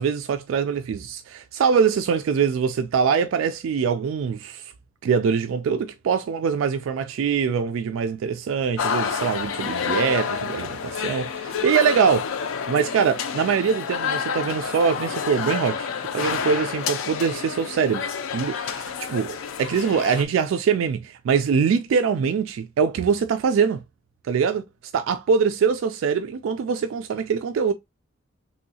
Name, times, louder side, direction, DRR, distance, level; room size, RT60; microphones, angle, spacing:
voice 1, 0.0-4.7 5.0-15.9 16.1-18.1 18.3-23.8 24.2-24.6 24.9-27.7, right 6 dB, 75° right, 0.3 m, -23 dB
sound 1, 8.8-20.2, left 6 dB, 90° left, 0.4 m, -29 dB
3.0 x 2.7 x 2.7 m
head